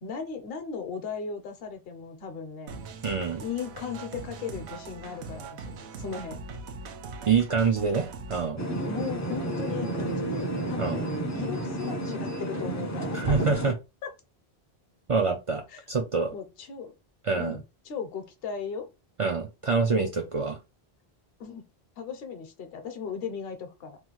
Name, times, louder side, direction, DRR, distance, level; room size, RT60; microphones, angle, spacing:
voice 1, 0.0-2.8 3.4-6.4 8.8-11.1 11.3-13.4 14.0-14.1 15.7-15.8 16.3-16.9 17.3-18.9 21.4-21.6 22.0-24.0, left 6 dB, 70° left, 0.9 m, -37 dB
sound 1, 2.7-8.5, right 4 dB, 90° right, 0.9 m, -41 dB
voice 2, 3.0-3.4 7.3-8.6 10.8-11.0 13.1-13.7 15.1-16.3 17.2-17.6 19.2-20.6, right 5 dB, 60° right, 0.3 m, -26 dB
sound 2, 8.6-13.7, right 1 dB, 25° left, 0.4 m, -31 dB
3.0 x 2.3 x 2.9 m
omnidirectional pair, 1.1 m